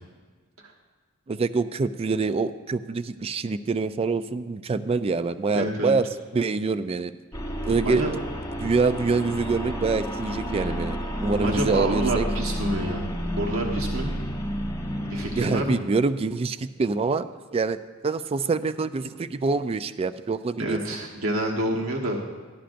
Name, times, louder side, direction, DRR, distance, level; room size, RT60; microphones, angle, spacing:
voice 1, 1.3-6.1 6.3-7.1 7.6-8.0 8.6-12.3 15.4-17.8 18.0-20.8, right 4 dB, 30° right, 12 dB, 0.3 m, -25 dB
voice 2, 5.5-5.9 7.8-8.1 10.7-10.8 11.4-13.1 13.4-14.1 15.0-15.8 20.6-22.2, right 1 dB, 85° right, -1 dB, 1.2 m, -28 dB
sound 1, 7.3-15.6, equal, 20° left, 0.8 m, -30 dB
14.0 x 11.5 x 2.6 m, 1.4 s
head